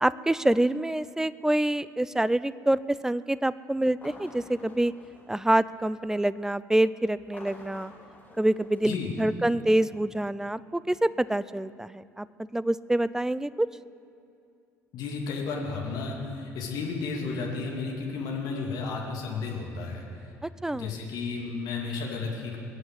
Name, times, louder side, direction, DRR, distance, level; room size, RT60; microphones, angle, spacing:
voice 1, 0.0-4.9 5.3-7.9 8.4-12.3 12.5-13.7 20.4-20.9, right 1 dB, 5° right, 18 dB, 0.4 m, -26 dB
sound 1, 3.9-6.1 7.2-9.7, left 2 dB, 20° left, 3.2 m, -51 dB
voice 2, 14.9-20.3 20.7-22.6, left 4 dB, 55° left, -1 dB, 2.5 m, -33 dB
22.0 x 7.9 x 8.0 m, 2.5 s
figure-of-eight pair, 55°, 8 cm